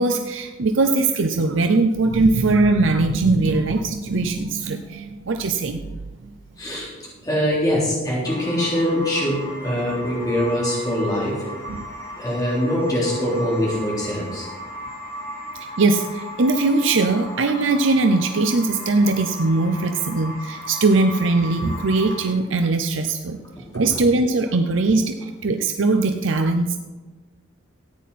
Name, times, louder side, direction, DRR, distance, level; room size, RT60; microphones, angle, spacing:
voice 1, 0.0-5.8 15.8-23.4 23.7-26.8, right 3 dB, 70° right, 6 dB, 0.6 m, -20 dB
voice 2, 6.6-11.4 12.1-15.5 20.6-20.7, equal, 20° left, -6 dB, 3.6 m, -24 dB
sound 1, 8.2-22.3, left 1 dB, 45° left, 3.0 m, -36 dB
14.5 x 9.3 x 4.2 m, 1.3 s
head